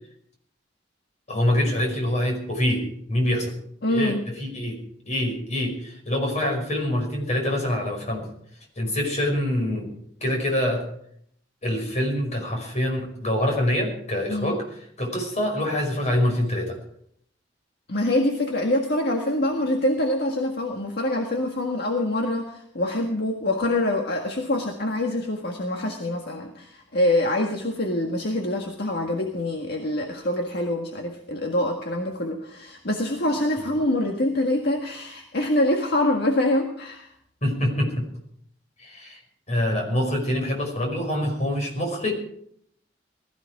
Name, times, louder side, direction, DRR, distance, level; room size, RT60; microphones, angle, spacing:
voice 1, 1.3-3.6 3.9-4.8 5.1-8.3 8.8-9.9 10.2-10.8 11.6-14.6 15.0-16.8 37.4-38.1 38.8-39.2 39.5-42.1, left 1 dB, 40° left, 2 dB, 5.3 m, -25 dB
voice 2, 3.8-4.2 14.3-14.5 17.9-37.1, left 1 dB, 60° left, 2 dB, 1.7 m, -25 dB
20.0 x 14.5 x 4.8 m, 0.68 s
head